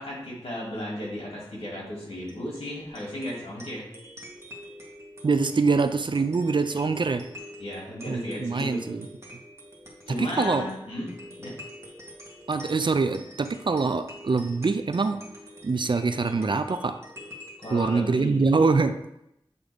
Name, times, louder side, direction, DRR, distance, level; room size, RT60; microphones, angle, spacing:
voice 1, 0.0-3.9 7.6-9.0 10.1-11.1 11.4-11.5 17.6-18.7, left 1 dB, 90° left, -4 dB, 2.3 m, -35 dB
sound 1, 2.1-17.8, equal, 30° right, 1.9 m, -46 dB
voice 2, 5.2-7.2 8.1-9.1 10.2-10.7 12.5-15.2 15.6-16.9 17.7-18.9, right 4 dB, 55° right, 10 dB, 0.5 m, -24 dB
8.0 x 3.7 x 3.5 m, 0.82 s
wide cardioid pair, 45°, 10 cm